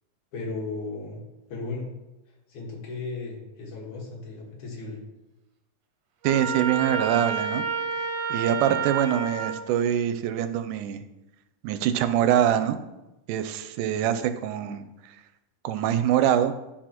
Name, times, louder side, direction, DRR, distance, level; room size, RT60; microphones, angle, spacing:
voice 1, 0.3-1.2 1.5-1.9 2.5-5.0, left 3 dB, 75° left, -3 dB, 3.1 m, -35 dB
Trumpet, 6.2-9.6, right 6 dB, 70° right, 1.6 m, -29 dB
voice 2, 6.2-7.6 8.3-11.0 11.6-12.8 13.3-15.1 15.6-16.5, right 10 dB, 90° right, 10 dB, 2.1 m, -24 dB
12.5 x 4.5 x 2.9 m, 1.0 s
omnidirectional pair, 3.5 m